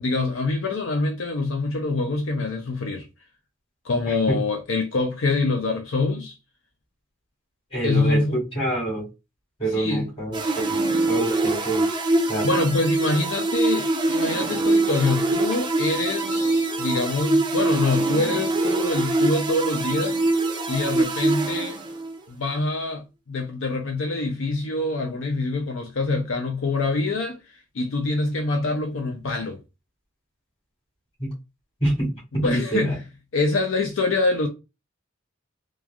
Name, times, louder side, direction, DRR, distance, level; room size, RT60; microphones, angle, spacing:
voice 1, 0.0-3.1 3.8-6.4 7.8-8.4 9.7-10.1 12.4-20.2 20.7-21.8 22.3-27.4 27.7-29.6 32.4-33.0 33.3-34.5, left 3 dB, 80° left, 0.5 m, -25 dB
voice 2, 4.0-4.4 7.7-9.1 9.6-11.9 12.3-12.5 31.2-31.3 31.8-33.0, right 2 dB, 30° left, 1.6 m, -26 dB
sound 1, 10.3-22.2, right 2 dB, 25° right, 0.4 m, -24 dB
3.1 x 2.4 x 2.3 m
head